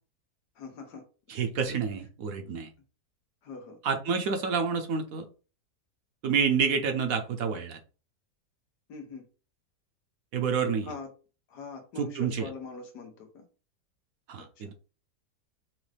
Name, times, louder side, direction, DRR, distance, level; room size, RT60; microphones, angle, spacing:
voice 1, 0.5-1.0 3.4-3.8 8.9-9.3 10.8-11.1 11.5-13.5 14.4-14.7, left 4 dB, 90° left, 4 dB, 1.6 m, -43 dB
voice 2, 1.3-2.7 3.8-5.3 6.2-7.8 10.3-10.9 12.0-12.5 14.3-14.7, right 6 dB, 65° right, 5 dB, 1.0 m, -28 dB
6.1 x 2.4 x 3.3 m, 0.36 s
omnidirectional pair, 1.7 m